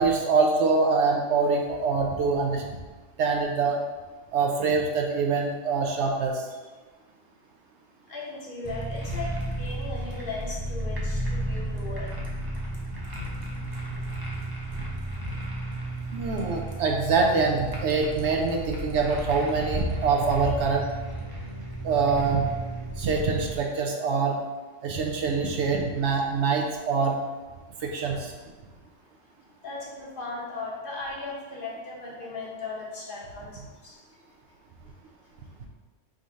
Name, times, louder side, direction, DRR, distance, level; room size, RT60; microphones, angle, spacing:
voice 1, 0.0-2.7 3.2-3.8 4.3-6.5 16.1-20.9 21.8-22.5 23.0-24.4 24.8-27.2 27.8-28.3, right 4 dB, 70° right, 1 dB, 0.8 m, -24 dB
voice 2, 8.1-9.3 9.6-12.1 29.6-34.0, left 3 dB, 50° left, -4 dB, 1.0 m, -37 dB
sound 1, 8.6-23.6, right 1 dB, 25° right, 0.5 m, -33 dB
3.7 x 2.7 x 4.7 m, 1.3 s
omnidirectional pair, 1.3 m